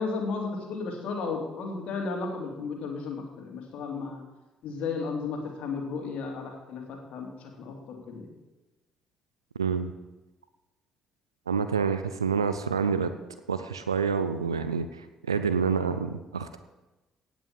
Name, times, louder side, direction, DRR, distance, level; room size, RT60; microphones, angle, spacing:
voice 1, 0.0-4.2 4.6-7.3 7.6-8.3, left 4 dB, 60° left, 2 dB, 2.8 m, -34 dB
voice 2, 9.6-9.9 11.5-13.1 13.5-16.6, right 6 dB, 85° right, 10 dB, 0.5 m, -28 dB
17.0 x 6.2 x 7.4 m, 1.1 s
figure-of-eight pair, 45°, 2 cm